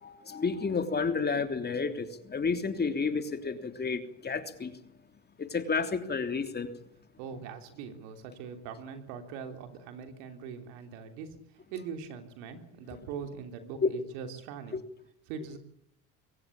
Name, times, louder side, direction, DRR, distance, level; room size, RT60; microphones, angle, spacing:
voice 1, 0.0-4.7 5.4-6.7 14.7-14.8, left 4 dB, 25° left, 3.2 m, -31 dB
voice 2, 7.2-14.8 15.3-15.6, right 6 dB, 80° right, 3.5 m, -42 dB
24.0 x 17.0 x 8.8 m
supercardioid pair, 90°, 36 cm